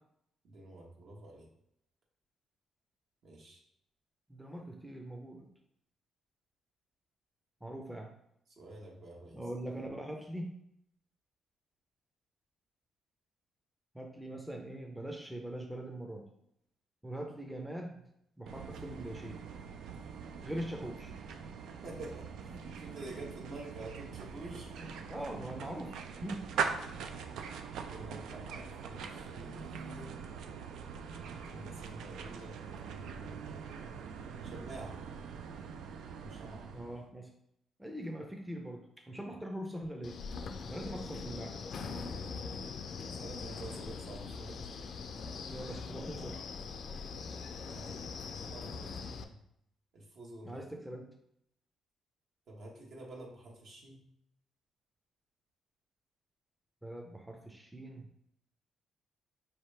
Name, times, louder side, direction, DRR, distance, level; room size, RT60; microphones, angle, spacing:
voice 1, 0.4-1.5 3.2-3.6 8.6-9.4 21.8-25.1 27.9-30.3 31.2-32.6 32.8-33.4 34.4-35.0 36.2-36.7 42.1-42.4 43.2-44.7 47.7-48.0 48.3-49.4 49.9-50.6 52.5-54.0, right 2 dB, 60° right, -1 dB, 1.2 m, -48 dB
voice 2, 4.3-5.5 7.6-8.1 9.3-10.5 13.9-16.2 17.0-18.0 18.4-19.4 20.4-21.1 25.1-26.4 36.7-37.3 37.8-40.2 40.6-41.5 41.9-42.1 45.5-46.4 50.4-51.0 56.8-58.1, right 1 dB, 5° right, 1 dB, 0.5 m, -42 dB
sound 1, 18.5-37.1, right 6 dB, 80° right, 0.4 m, -42 dB
Wind, 40.0-49.2, left 5 dB, 55° left, 0.4 m, -42 dB
4.7 x 2.8 x 3.3 m, 0.76 s
cardioid pair, 90°, 0 cm